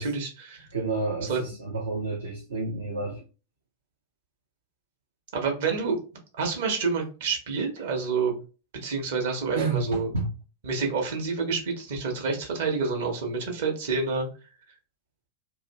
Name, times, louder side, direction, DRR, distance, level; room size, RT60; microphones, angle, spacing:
voice 1, 0.0-0.7 1.2-1.4 5.3-6.0 6.4-8.3 8.8-10.1 10.6-14.3, right 4 dB, 55° right, 1.1 m, -28 dB
voice 2, 0.7-3.2 9.5-10.3, right 3 dB, 70° right, 0.7 m, -30 dB
2.8 x 2.4 x 4.1 m
figure-of-eight pair, 90°, 0 cm